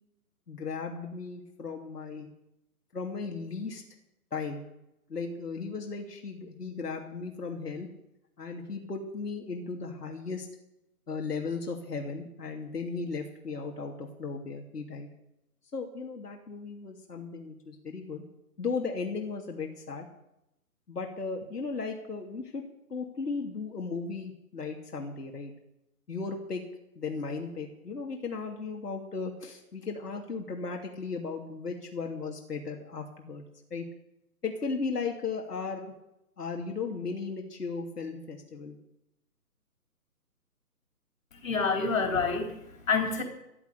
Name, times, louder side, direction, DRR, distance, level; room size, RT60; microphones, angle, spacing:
voice 1, 0.5-2.3 2.9-3.8 4.3-4.6 5.1-7.9 8.4-10.5 11.1-15.1 15.7-18.2 18.6-20.1 20.9-25.5 26.1-26.6 27.0-33.8 34.4-35.9 36.4-38.8, left 4 dB, 85° left, 2 dB, 2.8 m, -36 dB
voice 2, 41.3-43.2, left 4 dB, 60° left, 5 dB, 3.9 m, -28 dB
14.0 x 12.5 x 6.8 m, 0.85 s
hypercardioid pair, 155°, 46 cm